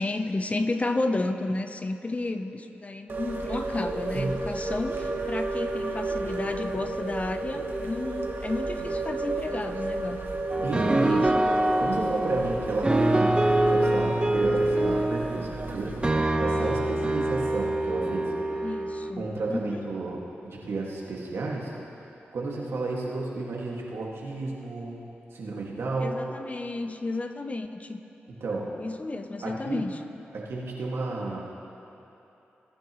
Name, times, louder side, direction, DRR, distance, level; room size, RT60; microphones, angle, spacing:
voice 1, 0.0-10.2 10.6-11.3 18.6-19.8 26.0-28.0 28.8-30.0, left 2 dB, 35° left, 8 dB, 0.7 m, -32 dB
sound 1, 3.1-16.1, right 2 dB, 55° right, 1.3 m, -33 dB
sound 2, 10.5-19.1, right 1 dB, 20° right, 0.9 m, -25 dB
voice 2, 10.6-11.3 11.8-16.0 16.4-18.3 18.6-18.7 19.2-21.7 22.3-25.0 25.3-26.2 28.4-28.7 29.4-29.8 30.3-31.4, right 3 dB, 75° right, -3 dB, 1.9 m, -32 dB
20.5 x 10.5 x 3.1 m, 2.9 s
cardioid pair, 55°, 4 cm